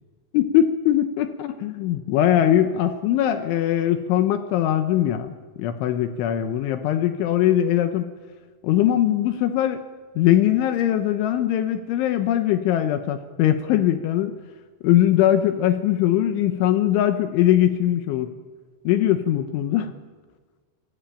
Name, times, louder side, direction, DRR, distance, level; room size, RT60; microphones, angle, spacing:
voice 1, 0.3-8.1 8.6-9.8 10.2-14.4 14.8-18.3 18.8-19.9, left 11 dB, 80° left, 8 dB, 3.3 m, -21 dB
25.0 x 20.0 x 8.9 m, 1.4 s
omnidirectional pair, 5.8 m